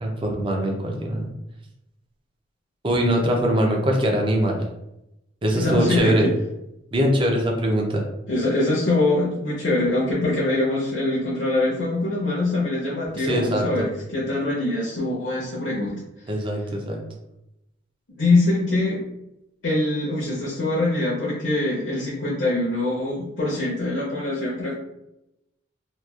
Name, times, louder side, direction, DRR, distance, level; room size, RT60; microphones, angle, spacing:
voice 1, 0.0-1.3 2.8-4.6 5.4-6.3 6.9-8.0 13.1-13.9 16.3-17.0, equal, 25° right, 0 dB, 0.5 m, -22 dB
voice 2, 5.5-6.3 8.3-16.0 18.2-19.0 19.6-24.7, left 2 dB, 70° left, -7 dB, 0.7 m, -23 dB
2.9 x 2.3 x 2.3 m, 0.88 s
head